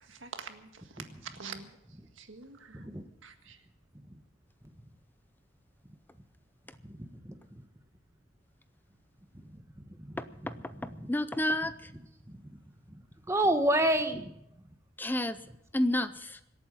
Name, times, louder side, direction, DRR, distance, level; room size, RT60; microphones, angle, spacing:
voice 1, 0.0-1.8 2.2-2.9 3.2-3.6, right 5 dB, 85° right, 6 dB, 1.8 m, -46 dB
voice 2, 6.8-7.4 9.3-9.6 9.9-10.2 11.0-11.1 12.3-12.6 12.9-13.0 13.3-14.3, right 1 dB, 15° right, 7 dB, 1.2 m, -29 dB
voice 3, 10.2-10.5 11.1-11.9 15.0-15.4 15.7-16.4, left 1 dB, 10° left, 12 dB, 0.5 m, -30 dB
24.5 x 8.8 x 6.4 m, 0.82 s
head